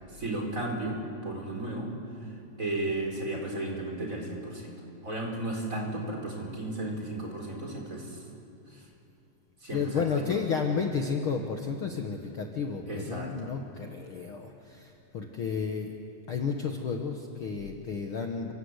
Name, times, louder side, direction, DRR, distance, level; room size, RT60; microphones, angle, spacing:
voice 1, 0.1-1.9 2.2-4.7 5.0-8.2 8.7-8.8 9.6-10.0 10.3-10.4 12.9-13.5, right 2 dB, 20° right, 0 dB, 4.6 m, -34 dB
voice 2, 9.7-15.9 16.3-18.5, left 5 dB, 70° left, 3 dB, 1.3 m, -32 dB
28.5 x 25.5 x 8.2 m, 2.6 s
omnidirectional pair, 4.5 m